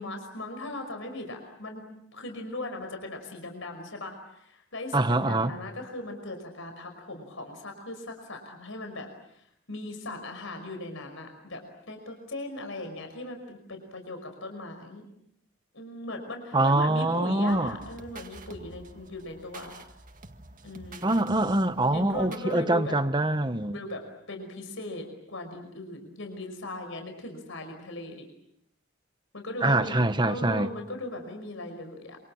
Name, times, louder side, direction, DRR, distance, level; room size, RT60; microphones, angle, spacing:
voice 1, 0.0-1.8 2.1-15.0 15.7-19.8 20.6-21.1 21.9-22.9 23.7-28.3 29.3-32.2, left 2 dB, 70° left, 5.5 m, -39 dB
voice 2, 4.9-5.5 16.5-17.8 21.0-23.8 29.6-30.7, right 2 dB, 20° right, 1.3 m, -24 dB
sound 1, 17.5-22.6, right 2 dB, 40° right, 2.0 m, -48 dB
27.5 x 26.0 x 7.4 m
head